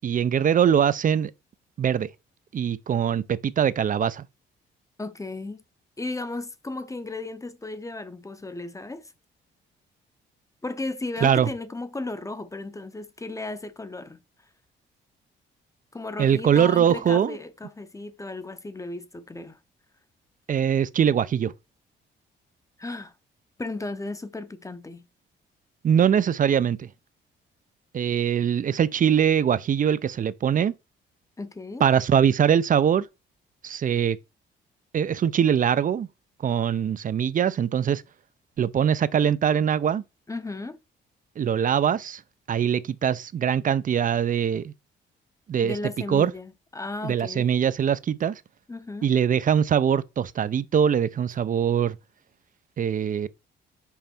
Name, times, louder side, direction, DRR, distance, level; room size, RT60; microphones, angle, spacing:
voice 1, 0.0-1.3 1.8-2.1 2.5-4.3 11.2-11.5 16.2-17.4 20.5-21.5 25.8-26.9 27.9-30.7 31.8-33.1 33.6-34.2 34.9-36.1 36.4-38.0 38.6-40.0 41.4-42.2 42.5-44.7 45.5-45.8 46.1-46.3 47.0-48.4 49.0-52.0 52.8-53.3, right 8 dB, 45° right, 0.5 m, -22 dB
voice 2, 5.0-5.6 6.0-9.1 10.6-14.2 15.9-19.6 22.8-23.1 23.6-25.0 31.4-31.8 40.3-40.8 45.6-47.5 48.7-49.1, left 2 dB, 15° left, 0.7 m, -35 dB
5.6 x 5.0 x 4.4 m
cardioid pair, 90°, 20 cm